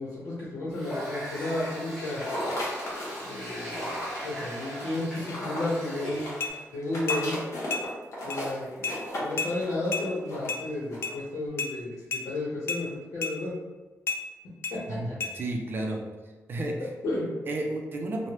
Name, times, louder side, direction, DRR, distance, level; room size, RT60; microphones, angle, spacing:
voice 1, 0.0-2.2 3.2-3.9 4.2-6.3 6.7-7.3 8.2-8.9 9.2-12.9 13.1-13.5 14.7-15.1 17.0-17.3, left 2 dB, 85° left, -8 dB, 0.9 m, -32 dB
Water tap faucet, 0.7-6.5, equal, 10° left, 1.3 m, -38 dB
sound 1, 2.2-11.2, equal, 60° left, 1.0 m, -36 dB
sound 2, 6.4-6.5 7.1-7.3 7.7-7.9 8.3-8.4 8.8-9.0 9.4-9.5 9.9-10.1 10.5-10.6 11.0-11.2 11.6-11.7 12.1-12.2 12.7-12.8 13.2-13.4 14.1-14.2 14.6-14.8 15.2-15.3, left 4 dB, 45° left, 0.3 m, -30 dB
voice 2, 14.9-16.0 16.5-16.9 17.5-18.3, right 1 dB, 40° right, 1 dB, 0.5 m, -32 dB
3.1 x 2.2 x 2.9 m, 1.3 s
wide cardioid pair, 150°, 6 cm